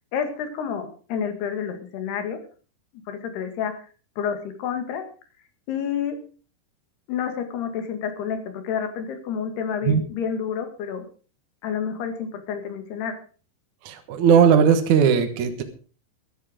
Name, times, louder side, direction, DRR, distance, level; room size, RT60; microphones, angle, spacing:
voice 1, 0.1-2.4 3.1-3.8 4.2-5.0 5.7-6.2 7.1-11.1 11.6-13.2, left 7 dB, 80° left, 7 dB, 4.0 m, -29 dB
voice 2, 13.8-15.6, right 7 dB, 60° right, 7 dB, 2.4 m, -18 dB
13.5 x 12.5 x 5.0 m, 0.38 s
omnidirectional pair, 4.6 m